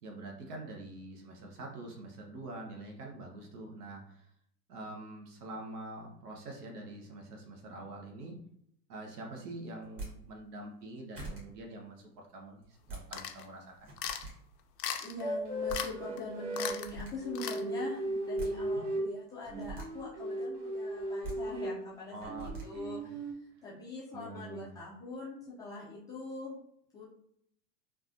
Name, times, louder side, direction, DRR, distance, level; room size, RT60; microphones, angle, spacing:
voice 1, 0.0-4.3 4.7-8.5 8.9-13.9 18.5-19.0 22.1-23.1 23.6-23.7 24.1-24.7, right 2 dB, 75° right, 1 dB, 1.1 m, -45 dB
sound 1, 9.8-10.1 10.8-10.9 11.1-11.4 12.6-13.0 13.7-14.3 15.4-15.5 15.7-15.8 16.6-17.1 18.1-18.5 19.4-19.9 21.0-21.3 22.2-22.6, right 3 dB, 30° right, 1.4 m, -42 dB
sound 2, 13.1-13.5 14.0-14.3 14.8-15.2 15.7-15.9 16.2-16.3 16.5-16.9 17.3-17.6, left 9 dB, 90° left, 0.6 m, -37 dB
voice 2, 15.0-23.2 23.6-26.6 26.9-27.1, left 3 dB, 10° left, -9 dB, 0.3 m, -43 dB
sound 3, 15.2-16.8 17.2-19.1 19.5-21.8 22.3-23.3, right 1 dB, 50° right, 1.3 m, -36 dB
3.4 x 2.3 x 2.6 m, 0.71 s
hypercardioid pair, 120°, 47 cm